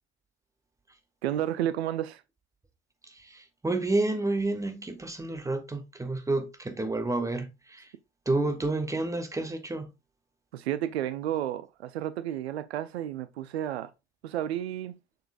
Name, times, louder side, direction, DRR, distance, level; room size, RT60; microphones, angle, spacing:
voice 1, 1.2-2.2 10.5-13.9 14.2-15.0, right 11 dB, 70° right, 0.5 m, -31 dB
voice 2, 3.2-7.9 8.3-9.9, right 2 dB, 10° right, 1.2 m, -30 dB
6.6 x 6.5 x 2.4 m
figure-of-eight pair, 55°, 33 cm